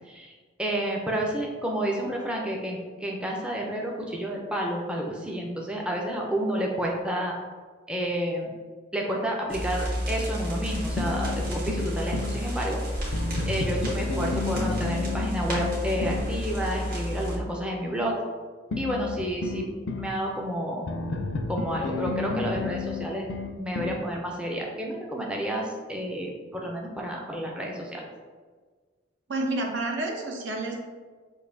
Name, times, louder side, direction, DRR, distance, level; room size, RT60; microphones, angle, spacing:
voice 1, 0.1-7.3 7.9-8.5 8.9-12.8 13.5-18.2 18.8-20.9 21.5-23.3 23.6-28.0, right 1 dB, 5° right, -2 dB, 0.4 m, -30 dB
sound 1, 9.5-17.4, equal, 50° right, 1.3 m, -31 dB
sound 2, 11.0-12.4 13.1-16.3 18.7-20.1 20.9-24.0, left 4 dB, 80° left, 0.4 m, -32 dB
voice 2, 29.3-30.8, right 2 dB, 75° right, 1 dB, 0.7 m, -29 dB
6.3 x 2.6 x 2.6 m, 1.5 s
head